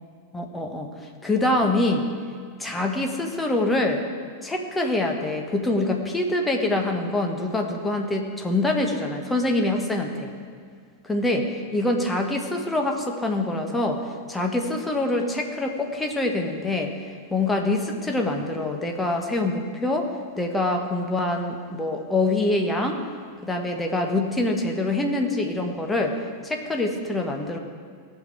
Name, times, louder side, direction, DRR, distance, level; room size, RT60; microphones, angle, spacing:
voice 1, 0.3-0.9 1.2-2.1 2.6-4.0 4.4-10.3 11.1-16.9 17.3-20.1 20.4-23.0 23.4-26.2 26.4-27.6, left 2 dB, 10° left, 2 dB, 1.3 m, -25 dB
17.0 x 5.8 x 4.9 m, 2.1 s
figure-of-eight pair, 90°, 0 cm